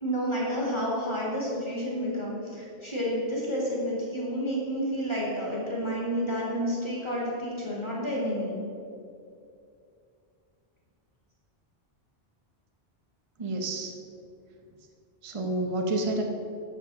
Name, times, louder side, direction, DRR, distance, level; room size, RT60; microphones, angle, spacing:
voice 1, 0.0-8.6, equal, 25° left, -5 dB, 2.1 m, -30 dB
voice 2, 13.4-13.9 15.2-16.2, right 2 dB, 30° right, 3 dB, 0.8 m, -29 dB
7.7 x 7.3 x 6.1 m, 2.5 s
omnidirectional pair, 1.1 m